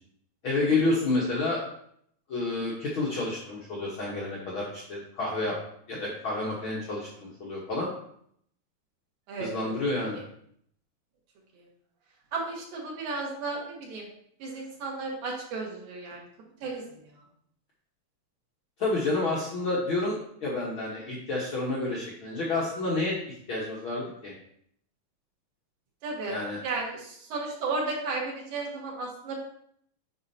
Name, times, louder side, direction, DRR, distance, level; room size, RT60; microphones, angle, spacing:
voice 1, 0.4-1.6 2.3-5.5 5.9-7.9 9.4-10.2 18.8-23.1 23.5-24.3 26.3-26.6, left 2 dB, 85° left, -5 dB, 1.1 m, -29 dB
voice 2, 9.3-9.7 11.5-11.6 12.3-14.1 14.4-16.3 16.6-17.1 26.0-26.4 26.6-29.4, right 3 dB, 75° right, -2 dB, 3.1 m, -34 dB
8.7 x 5.6 x 2.7 m, 0.68 s
omnidirectional pair, 4.2 m